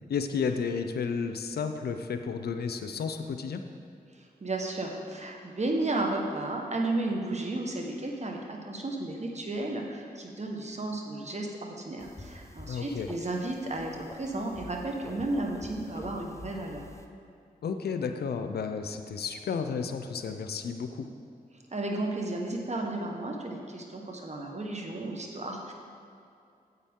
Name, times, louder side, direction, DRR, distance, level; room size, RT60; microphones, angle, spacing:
voice 1, 0.1-3.6 12.7-13.1 17.6-21.1, left 5 dB, 90° left, 7 dB, 0.5 m, -32 dB
voice 2, 4.4-16.8 21.7-25.7, right 2 dB, 45° right, 1 dB, 1.3 m, -33 dB
sound 1, 12.0-17.1, left 2 dB, 20° left, 0.7 m, -48 dB
9.7 x 7.7 x 3.7 m, 2.5 s
cardioid pair, 45°, 16 cm